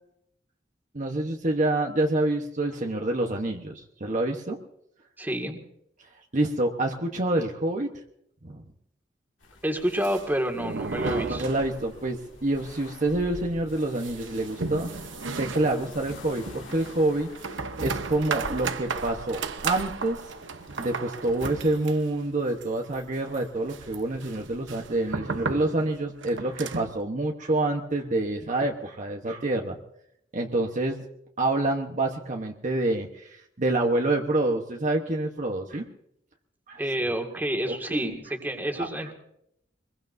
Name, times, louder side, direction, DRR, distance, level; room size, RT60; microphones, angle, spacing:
voice 1, 0.9-4.6 6.3-7.9 8.4-8.6 11.0-14.9 15.3-20.3 20.8-29.8 30.3-31.1 31.4-35.8 36.7-36.8 37.6-37.8 38.8-38.9, right 2 dB, 40° right, 2 dB, 1.1 m, -27 dB
voice 2, 5.2-5.6 9.6-11.5 36.8-39.1, equal, 10° right, 3 dB, 2.0 m, -28 dB
sound 1, 9.4-21.9, left 2 dB, 90° left, 2.4 m, -47 dB
sound 2, 9.8-12.2 12.4-12.5 12.8-12.9 13.4-27.0, right 4 dB, 85° right, 0.9 m, -35 dB
24.5 x 21.5 x 2.7 m, 0.75 s
head